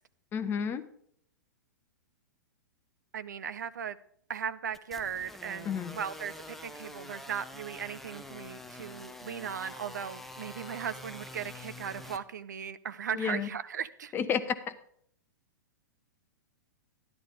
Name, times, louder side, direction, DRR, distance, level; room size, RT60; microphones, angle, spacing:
voice 1, 0.3-0.8 5.7-6.0 13.1-13.5 14.1-14.6, left 7 dB, 20° left, 11 dB, 0.9 m, -30 dB
voice 2, 3.1-4.0 4.3-14.1, right 8 dB, 65° right, 14 dB, 0.6 m, -37 dB
sound 1, 4.7-12.2, left 1 dB, ahead, 0.7 m, -46 dB
12.5 x 11.0 x 3.7 m, 0.66 s
figure-of-eight pair, 105°, 10 cm